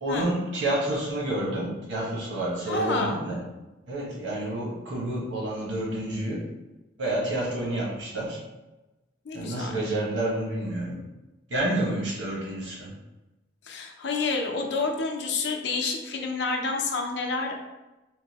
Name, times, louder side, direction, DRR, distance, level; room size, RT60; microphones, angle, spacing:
voice 1, 0.0-3.4 3.9-6.4 7.0-8.4 9.3-11.0 11.5-12.9, right 1 dB, 70° right, -5 dB, 1.2 m, -29 dB
voice 2, 2.7-3.2 9.2-9.7 13.6-17.6, left 3 dB, 65° left, 2 dB, 0.5 m, -29 dB
3.8 x 2.6 x 2.9 m, 1.0 s
head